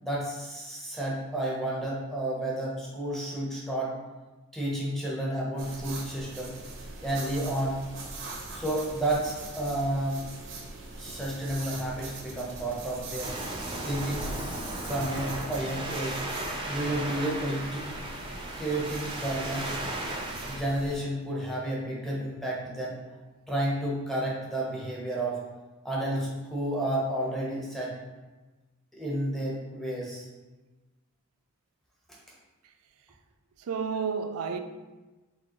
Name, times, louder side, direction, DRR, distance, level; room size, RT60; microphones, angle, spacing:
voice 1, 0.0-3.9 4.5-6.6 7.0-7.8 8.5-10.2 10.9-13.3 13.8-14.3 14.8-16.2 16.6-17.9 18.6-19.9 20.4-23.0 23.5-25.4 25.8-27.9 28.9-30.3 32.1-32.2, right 1 dB, ahead, 0.9 m, -31 dB
sound 1, 5.6-21.0, right 3 dB, 60° right, 0.9 m, -42 dB
Waves surf, 13.2-20.6, right 1 dB, 25° right, 0.6 m, -35 dB
voice 2, 33.6-34.6, right 5 dB, 85° right, 0.3 m, -31 dB
4.7 x 3.4 x 3.1 m
head